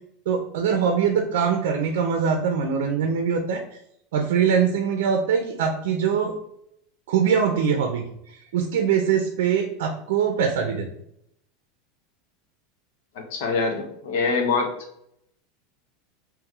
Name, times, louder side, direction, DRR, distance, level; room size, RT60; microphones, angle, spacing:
voice 1, 0.3-3.6 4.1-6.3 7.1-8.0 8.5-10.9, right 7 dB, 85° right, 4 dB, 0.5 m, -22 dB
voice 2, 13.1-14.7, left 4 dB, 70° left, 3 dB, 0.9 m, -24 dB
3.6 x 3.0 x 3.0 m, 0.75 s
supercardioid pair, 160°, 0 cm